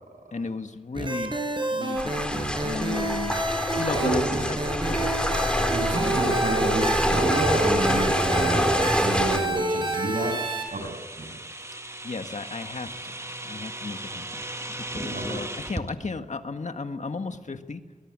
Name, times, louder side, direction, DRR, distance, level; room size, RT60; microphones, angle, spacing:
voice 1, 0.3-1.4 1.7-4.6 6.0-6.1 12.0-17.8, left 4 dB, 60° left, 7 dB, 1.8 m, -35 dB
sound 1, 0.9-10.7, right 2 dB, 35° right, 6.2 m, -29 dB
sound 2, 2.0-9.4, equal, 5° left, 3.8 m, -26 dB
voice 2, 3.9-4.4 5.7-8.7 9.0-10.4 10.7-11.3 15.1-15.4, right 1 dB, 65° right, 5 dB, 7.6 m, -29 dB
sound 3, 7.1-15.9, right 1 dB, 20° right, 1.9 m, -38 dB
22.5 x 21.5 x 8.9 m, 1.5 s
wide cardioid pair, 70°, 14 cm